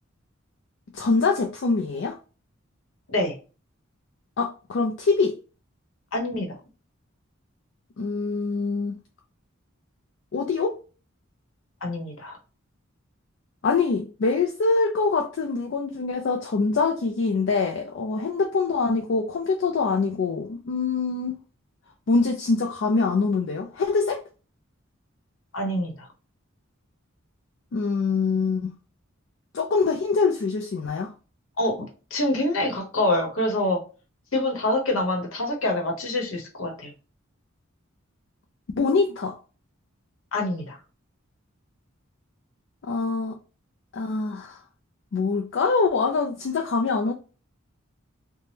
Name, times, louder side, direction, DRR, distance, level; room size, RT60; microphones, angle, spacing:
voice 1, 0.9-2.2 4.4-5.3 8.0-9.0 10.3-10.8 13.6-21.4 22.1-24.2 27.7-28.7 29.5-31.1 38.8-39.4 42.8-43.4 43.9-44.6 45.1-47.1, left 4 dB, 60° left, 0.4 m, -24 dB
voice 2, 6.1-6.5 11.8-12.4 25.5-25.9 31.6-33.8 34.3-36.9 40.3-40.8, left 1 dB, 75° left, 0.9 m, -26 dB
3.3 x 2.1 x 2.7 m
head